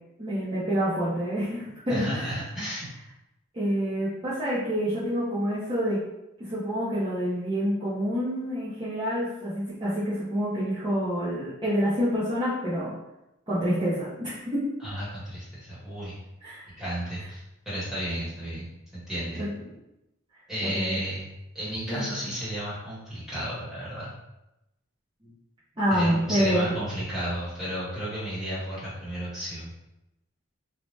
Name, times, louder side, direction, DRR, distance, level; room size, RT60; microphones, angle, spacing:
voice 1, 0.2-2.4 3.5-6.0 6.4-12.9 13.5-14.8 16.4-16.7 19.4-19.5 20.6-21.0 21.9-22.1 25.8-26.7, equal, 20° right, -11 dB, 0.6 m, -27 dB
voice 2, 1.9-2.9 14.8-16.2 16.8-18.7 18.9-19.4 20.5-21.2 21.5-24.1 25.9-29.7, equal, ahead, -10 dB, 1.1 m, -33 dB
2.7 x 2.1 x 3.1 m, 0.92 s
head